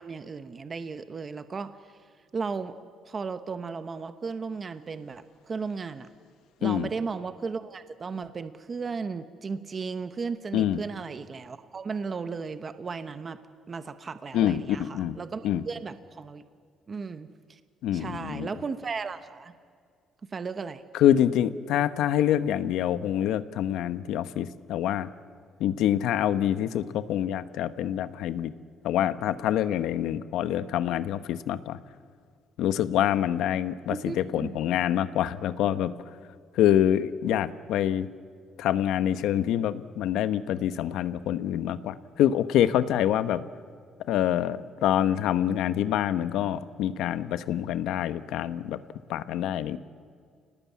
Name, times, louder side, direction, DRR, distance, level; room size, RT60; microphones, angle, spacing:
voice 1, 0.0-2.0 2.3-2.8 3.1-6.1 6.6-13.4 13.7-16.4 16.9-17.6 17.9-19.5 20.3-20.8 33.9-34.6, right 5 dB, 30° right, 11 dB, 0.9 m, -35 dB
voice 2, 14.3-15.2 15.4-15.6 17.8-18.5 20.9-25.1 25.6-28.5 28.8-31.8 32.6-35.9 36.5-38.1 38.6-43.4 44.1-48.8 49.1-49.8, left 11 dB, 85° left, 13 dB, 1.0 m, -26 dB
28.5 x 19.5 x 8.5 m, 2.1 s
cardioid pair, 150°, 0 cm